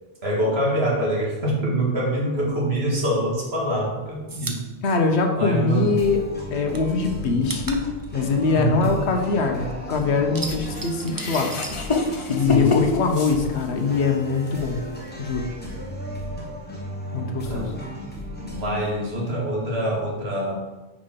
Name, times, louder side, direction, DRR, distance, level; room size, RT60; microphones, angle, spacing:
voice 1, 0.2-4.6 5.4-6.0 8.5-9.0 12.4-12.8 17.5-17.8 18.5-20.6, right 1 dB, 60° right, -3 dB, 2.0 m, -25 dB
sound 1, 3.2-6.0 6.3-9.6 9.9-12.5 12.8-13.9, right 3 dB, 25° right, 0.4 m, -38 dB
voice 2, 4.8-6.2 6.5-7.8 8.1-11.5 12.3-14.8 15.2-15.5 17.1-17.7, left 4 dB, 65° left, 4 dB, 1.1 m, -22 dB
sound 2, 5.9-19.0, equal, 10° left, 1.4 m, -35 dB
sound 3, 10.5-13.9 14.4-14.6 15.5-15.6, left 2 dB, 35° left, 0.6 m, -27 dB
5.0 x 5.0 x 5.7 m, 1.1 s
omnidirectional pair, 1.2 m